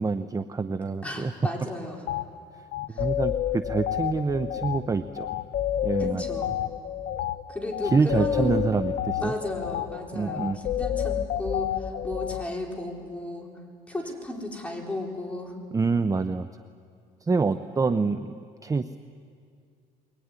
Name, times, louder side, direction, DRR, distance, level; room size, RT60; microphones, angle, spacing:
voice 1, 0.0-1.3 2.9-5.3 5.8-6.2 7.8-9.3 10.1-10.6 15.7-16.5 17.2-18.4 18.6-19.0, right 4 dB, 20° right, 11 dB, 0.7 m, -26 dB
voice 2, 1.0-2.0 2.9-3.1 6.0-6.5 7.5-8.6 9.2-13.5 13.9-15.6, left 1 dB, 10° left, -1 dB, 4.5 m, -34 dB
sound 1, 2.1-2.3 2.7-12.4, left 11 dB, 70° left, 1.0 m, -30 dB
22.5 x 20.5 x 9.7 m, 2.3 s
cardioid pair, 110°, 17 cm